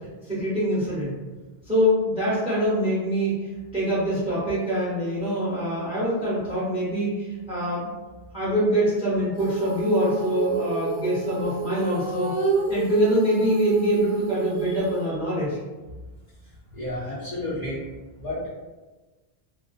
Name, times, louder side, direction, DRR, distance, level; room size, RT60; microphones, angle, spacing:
voice 1, 0.3-1.1 1.7-3.3 3.7-7.9 8.3-12.3 12.7-15.6, equal, 5° right, -9 dB, 0.7 m, -24 dB
Female singing, 9.4-15.1, right 3 dB, 75° right, 0.8 m, -29 dB
voice 2, 16.7-17.8 18.2-18.5, left 1 dB, 45° left, -10 dB, 0.8 m, -31 dB
2.3 x 2.3 x 2.4 m, 1.2 s
omnidirectional pair, 1.1 m